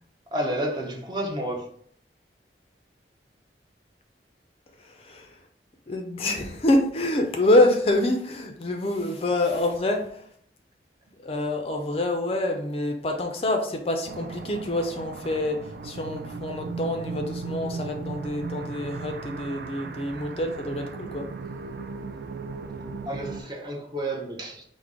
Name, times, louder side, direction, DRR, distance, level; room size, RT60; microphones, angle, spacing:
voice 1, 0.3-1.7 23.1-24.6, right 1 dB, 25° right, 0.6 m, -30 dB
voice 2, 4.8-5.3 5.9-10.2 11.2-21.3, left 1 dB, 35° left, 0.4 m, -26 dB
sound 1, 14.1-23.4, right 4 dB, 60° right, 0.3 m, -37 dB
4.9 x 2.1 x 3.6 m
head